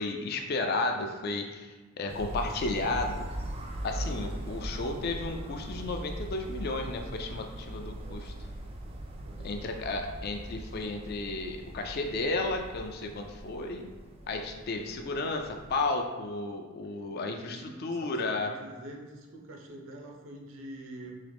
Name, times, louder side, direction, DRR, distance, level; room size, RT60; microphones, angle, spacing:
voice 1, 0.0-3.3 3.8-8.3 9.4-13.9 14.3-18.5, left 2 dB, 50° left, 4 dB, 0.4 m, -33 dB
sound 1, 2.1-15.9, right 1 dB, 30° right, 0.3 m, -40 dB
voice 2, 17.4-21.2, right 1 dB, 75° right, 1 dB, 0.7 m, -46 dB
3.7 x 2.9 x 3.4 m, 1.3 s
head